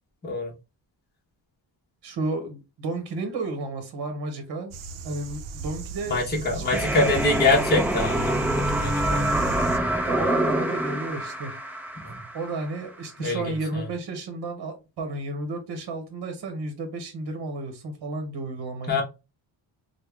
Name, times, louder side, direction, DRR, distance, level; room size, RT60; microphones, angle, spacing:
voice 1, 2.0-4.7 5.0-6.2 6.5-6.8 10.0-11.6 12.3-19.0, right 2 dB, 55° right, 0.9 m, -32 dB
sound 1, 4.7-9.8, right 4 dB, 80° right, 0.6 m, -37 dB
voice 2, 6.1-9.3 12.0-12.2 13.2-13.8 18.9-19.0, left 2 dB, 20° left, 0.9 m, -25 dB
sound 2, 6.7-12.6, right 1 dB, 5° right, 0.3 m, -26 dB
3.4 x 2.1 x 3.3 m
wide cardioid pair, 155°, 46 cm